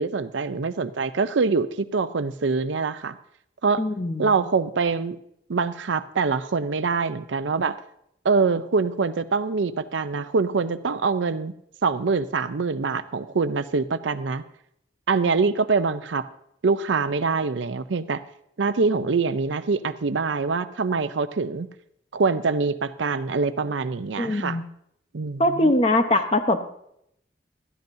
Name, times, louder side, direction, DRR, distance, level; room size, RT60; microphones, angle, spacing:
voice 1, 0.0-3.2 3.6-3.8 4.2-5.2 5.5-7.8 8.2-11.5 11.8-14.4 15.1-16.3 16.6-18.2 18.6-21.7 22.1-24.6 25.1-25.7, right 4 dB, 85° right, 12 dB, 0.6 m, -24 dB
voice 2, 3.8-4.4 24.2-24.6 25.4-26.7, left 1 dB, 30° left, 7 dB, 0.8 m, -22 dB
16.0 x 13.5 x 2.7 m, 0.73 s
head